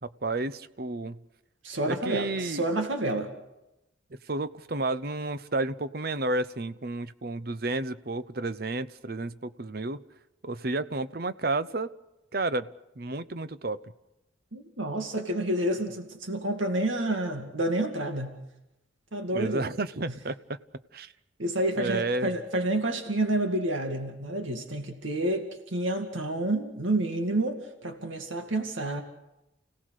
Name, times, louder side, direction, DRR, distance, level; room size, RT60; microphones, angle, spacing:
voice 1, 0.0-1.2 1.9-2.6 4.3-10.0 10.4-11.9 12.3-12.7 13.0-13.8 19.3-20.6 20.9-21.1 21.8-22.3, right 2 dB, 50° right, 14 dB, 0.8 m, -31 dB
voice 2, 1.6-3.3 14.5-18.3 19.1-19.7 21.4-29.0, right 1 dB, 80° right, 5 dB, 2.2 m, -29 dB
30.0 x 17.5 x 6.6 m, 0.91 s
head